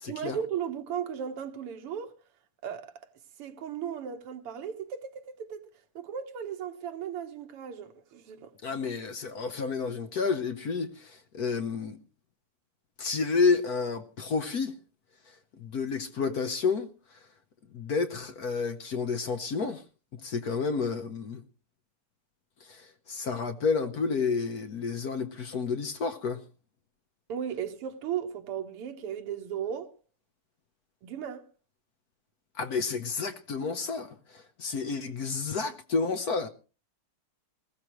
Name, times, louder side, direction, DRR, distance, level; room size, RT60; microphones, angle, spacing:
voice 1, 0.1-2.1 2.6-2.9 3.4-5.6 6.0-8.5 27.3-29.9 31.0-31.5, right 8 dB, 85° right, 2.2 m, -36 dB
voice 2, 8.6-12.0 13.0-14.8 15.3-16.9 17.7-19.8 20.1-21.4 22.6-26.4 32.6-36.5, left 5 dB, 55° left, 1.2 m, -30 dB
20.0 x 15.0 x 3.1 m
omnidirectional pair, 2.4 m